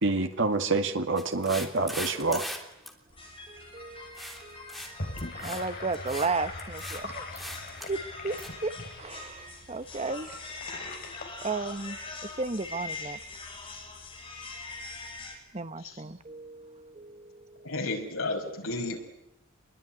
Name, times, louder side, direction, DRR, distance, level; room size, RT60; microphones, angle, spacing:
voice 1, 0.0-2.5, right 3 dB, 65° right, 6 dB, 2.0 m, -27 dB
sound 1, 1.2-2.6 2.9-3.0 4.2-4.4 4.7-4.9 5.2-5.6 5.9-6.3 6.6-7.0 7.3-7.9 8.4-8.5, equal, ahead, 3.2 m, -39 dB
sound 2, 3.1-15.4, left 3 dB, 25° left, 6.3 m, -43 dB
voice 2, 3.5-4.8 5.4-7.2 7.9-8.4 8.6-10.3 11.4-12.0 12.4-13.2 15.5-17.7, right 3 dB, 30° right, 12 dB, 1.0 m, -34 dB
Gurgling / Sink (filling or washing), 4.8-12.3, left 2 dB, 45° left, 4.1 m, -42 dB
voice 3, 17.6-19.0, left 2 dB, 85° left, 3 dB, 5.4 m, -32 dB
26.5 x 21.5 x 10.0 m, 0.89 s
head